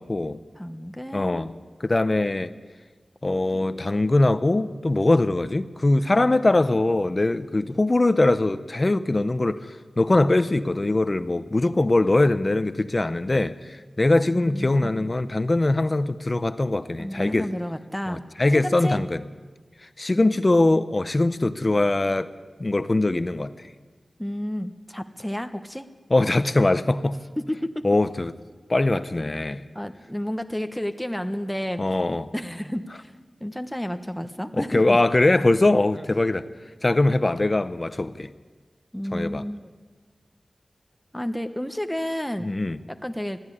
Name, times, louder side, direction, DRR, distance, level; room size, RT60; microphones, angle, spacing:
voice 1, 0.0-0.4 1.1-1.5 1.8-2.5 3.2-9.7 10.0-17.5 18.1-19.2 20.0-22.3 22.6-23.7 26.1-27.2 27.8-28.3 28.7-29.7 31.8-32.3 34.6-36.4 36.8-38.3 39.1-39.5 42.4-42.8, left 2 dB, 35° left, 0.8 m, -22 dB
voice 2, 0.6-1.5 3.3-3.8 17.0-18.2 18.5-19.0 24.2-25.9 27.4-27.8 29.7-31.8 32.3-33.1 33.4-35.0 36.0-36.1 38.9-39.7 41.1-42.5 42.9-43.4, equal, 5° left, 1.2 m, -31 dB
22.0 x 14.0 x 10.0 m
wide cardioid pair, 75°, 0 cm